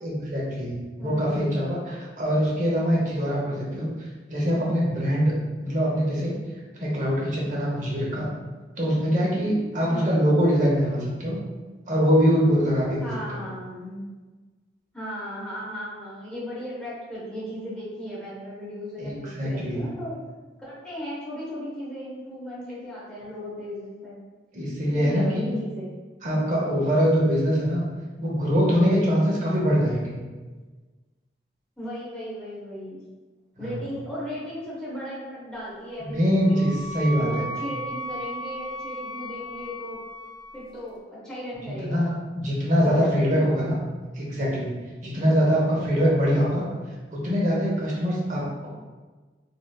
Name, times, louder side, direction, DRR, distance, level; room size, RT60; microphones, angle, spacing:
voice 1, 0.0-3.9 4.3-6.3 6.8-8.3 8.8-11.4 11.9-13.4 19.0-19.9 24.5-25.5 26.2-27.8 28.2-30.2 33.6-33.8 36.0-37.4 41.6-43.8 44.1-44.7 45.0-46.6 47.1-48.7, equal, 40° right, -4 dB, 0.8 m, -23 dB
voice 2, 1.0-1.6 9.9-10.1 13.0-14.1 14.9-20.2 20.6-24.2 25.0-25.9 31.8-33.0 33.6-36.6 37.2-40.0 40.5-41.0 41.2-42.1 42.8-43.5, equal, 5° left, -9 dB, 0.9 m, -36 dB
Wind instrument woodwind instrument, 35.9-40.7, right 1 dB, 20° left, 0.4 m, -36 dB
3.3 x 2.7 x 2.3 m, 1.3 s
head